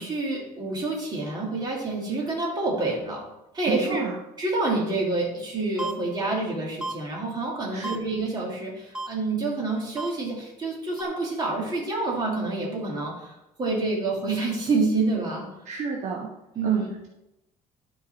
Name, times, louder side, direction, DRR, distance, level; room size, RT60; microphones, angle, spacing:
voice 1, 0.0-3.3 3.5-4.0 4.4-13.3 13.6-15.5 16.5-16.9, right 3 dB, 30° right, -2 dB, 2.7 m, -28 dB
voice 2, 3.7-4.2 7.7-8.0 15.7-16.3 16.6-17.1, right 6 dB, 55° right, -1 dB, 1.1 m, -30 dB
sound 1, 5.8-5.9 6.8-6.9 7.8-8.0 8.9-9.1 10.0-10.1 11.0-11.1, right 2 dB, 5° right, 0.6 m, -31 dB
12.5 x 4.7 x 4.3 m, 0.91 s
cardioid pair, 145°, 14 cm